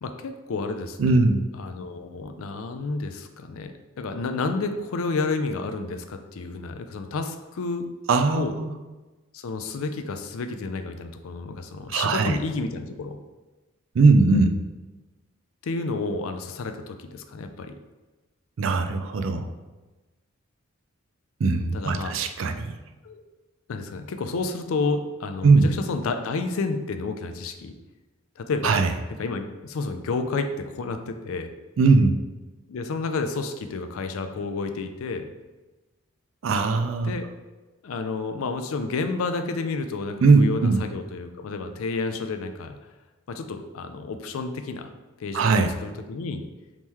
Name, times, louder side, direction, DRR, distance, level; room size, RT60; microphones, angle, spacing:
voice 1, 0.0-1.2 1.5-7.8 8.4-8.6 9.3-13.2 15.6-17.7 21.7-22.1 23.0-23.2 23.7-27.7 28.4-28.8 29.2-31.5 32.7-35.3 37.0-37.3 37.8-42.8 43.3-44.9 45.2-46.4, left 3 dB, 70° left, 7 dB, 0.4 m, -30 dB
voice 2, 1.0-1.4 8.1-8.7 11.9-12.4 13.9-14.6 18.6-19.5 21.4-22.8 25.4-25.7 28.6-28.9 31.8-32.2 36.4-37.1 40.2-40.8 45.3-45.7, right 3 dB, 60° right, 7 dB, 0.4 m, -19 dB
3.6 x 3.1 x 4.2 m, 1.2 s
head